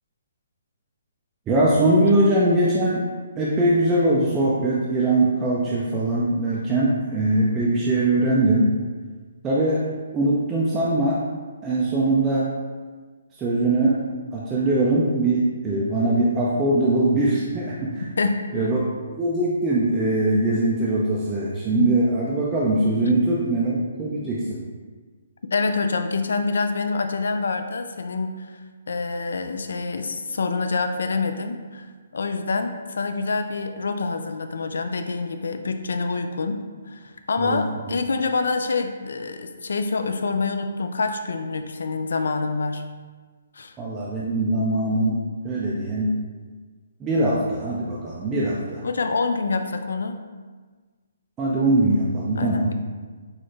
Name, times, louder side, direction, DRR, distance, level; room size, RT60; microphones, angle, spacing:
voice 1, 1.5-3.1 3.4-8.7 9.4-9.8 10.1-11.2 11.6-12.5 13.4-14.0 14.3-18.0 18.5-18.8 19.2-24.6 37.4-37.6 43.8-45.2 45.4-46.1 47.0-48.8 51.4-52.7, right 2 dB, 10° right, -6 dB, 0.3 m, -21 dB
voice 2, 18.2-18.7 25.5-28.6 28.9-42.8 43.5-43.8 48.8-50.2 52.4-52.7, left 4 dB, 75° left, 7 dB, 0.4 m, -26 dB
6.2 x 2.4 x 3.1 m, 1.4 s
hypercardioid pair, 175°, 0 cm